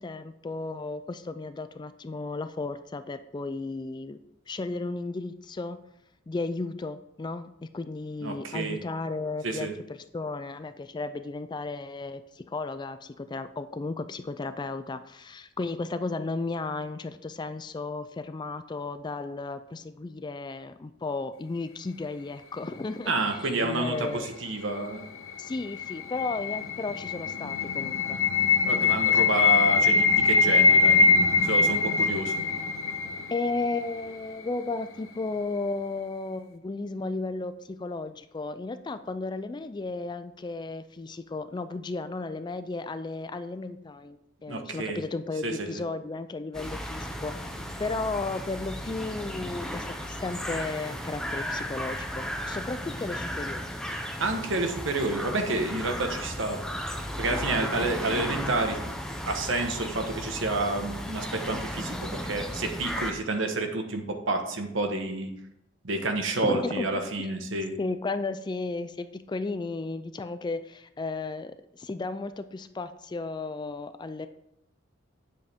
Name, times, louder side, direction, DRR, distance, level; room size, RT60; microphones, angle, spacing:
voice 1, 0.0-4.2 4.5-5.8 6.3-24.3 25.4-28.2 33.3-47.5 47.8-53.6 66.3-67.3 67.8-74.3, left 3 dB, 20° left, 11 dB, 0.3 m, -34 dB
voice 2, 8.2-8.8 9.4-9.7 23.1-25.0 28.6-32.3 44.5-45.0 45.4-45.8 54.2-56.6 57.2-58.9 59.3-65.3 65.8-67.8, right 2 dB, 65° right, 5 dB, 1.3 m, -29 dB
sound 1, 25.1-34.0, left 4 dB, 85° left, 0.8 m, -23 dB
sound 2, 46.5-63.1, equal, 5° left, 0.8 m, -35 dB
9.4 x 7.6 x 3.6 m, 0.81 s
head